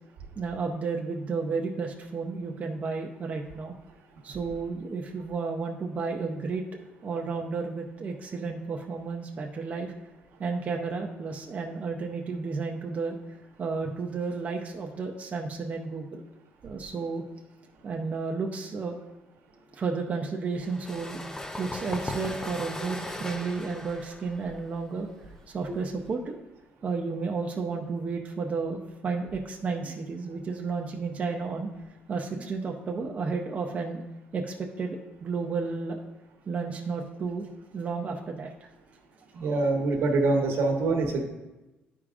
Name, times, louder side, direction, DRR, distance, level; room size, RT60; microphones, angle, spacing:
voice 1, 0.4-3.7 4.2-6.6 7.0-9.9 10.4-13.2 13.6-16.2 16.6-17.2 17.8-18.9 19.7-21.2 21.6-25.1 25.5-26.4 26.8-28.8 29.0-31.7 32.1-34.0 34.3-36.0 36.5-37.5 37.7-38.5 39.4-39.6, right 4 dB, 35° right, 1 dB, 0.6 m, -32 dB
sound 1, 20.6-26.1, left 1 dB, 15° left, 0.5 m, -38 dB
voice 2, 39.3-41.2, right 3 dB, 75° right, 3 dB, 1.2 m, -25 dB
11.0 x 4.8 x 2.5 m, 1.1 s
cardioid pair, 120°, 4 cm